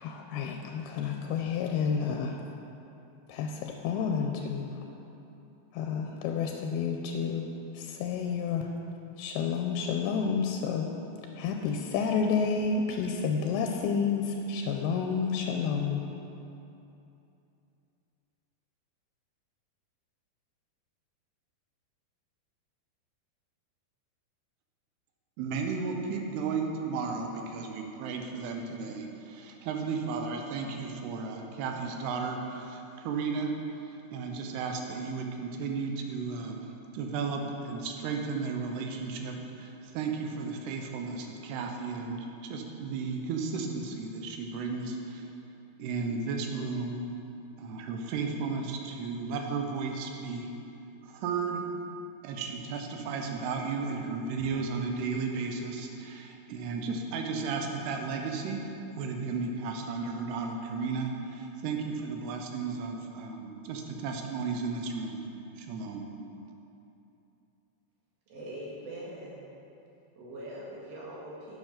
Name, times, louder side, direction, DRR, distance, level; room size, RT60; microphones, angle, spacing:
voice 1, 0.0-2.4 3.3-4.8 5.7-8.7 9.2-10.9 11.4-16.0, left 6 dB, 85° left, 3 dB, 2.4 m, -30 dB
voice 2, 25.4-33.5 33.8-45.3 45.8-47.0 47.6-50.5 51.0-51.6 52.2-58.6 58.9-65.2 65.6-66.0, right 4 dB, 85° right, 3 dB, 3.0 m, -34 dB
voice 3, 68.3-69.4 70.2-71.6, right 1 dB, 70° right, -4 dB, 3.4 m, -42 dB
9.6 x 7.0 x 5.7 m, 2.8 s
omnidirectional pair, 4.6 m